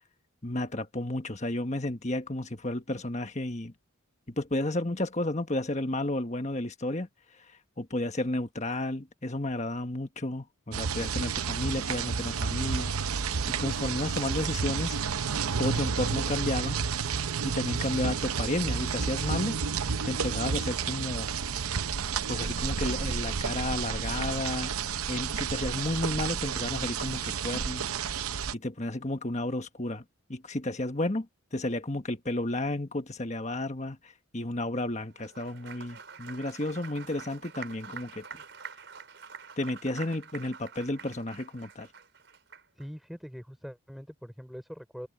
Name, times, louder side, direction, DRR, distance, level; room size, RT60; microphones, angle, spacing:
voice 1, 0.4-3.7 4.3-7.1 7.5-12.9 13.5-15.0 15.6-16.8 17.4-19.6 20.1-21.3 22.3-24.7 25.1-28.1 28.5-30.0 30.3-31.3 31.5-38.4 39.6-41.9, left 1 dB, 35° left, 1.5 m, -32 dB
sound 1, 10.7-28.5, right 6 dB, 90° right, 0.8 m, -31 dB
Applause, 35.1-42.9, right 6 dB, 55° right, 5.6 m, -46 dB
voice 2, 42.7-45.1, equal, ahead, 4.8 m, -43 dB
head